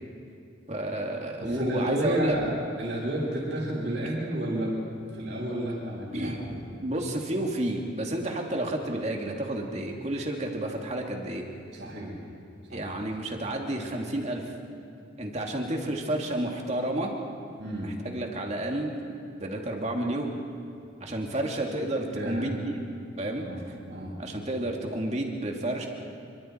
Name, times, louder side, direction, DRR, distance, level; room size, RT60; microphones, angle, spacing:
voice 1, 0.7-2.4 6.1-11.5 12.7-14.4 15.2-17.1 17.8-19.0 19.4-20.3 21.0-22.7 23.2-23.4 24.2-25.9, right 1 dB, 35° right, 1 dB, 2.5 m, -30 dB
voice 2, 1.4-2.5 2.8-6.3 11.7-12.2 12.7-12.9 17.6-18.0 22.1-22.5 23.4-23.6 23.9-24.2, right 1 dB, 65° right, -9 dB, 6.0 m, -31 dB
28.0 x 23.5 x 4.6 m, 2.6 s
head